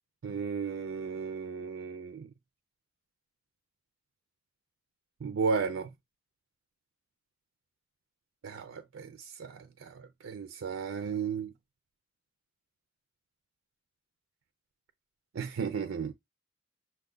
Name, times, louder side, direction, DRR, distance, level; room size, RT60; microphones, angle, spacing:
voice 1, 0.2-2.3 5.2-5.9 8.4-11.5 15.3-16.1, right 5 dB, 70° right, 0.4 m, -34 dB
6.0 x 2.3 x 3.7 m
head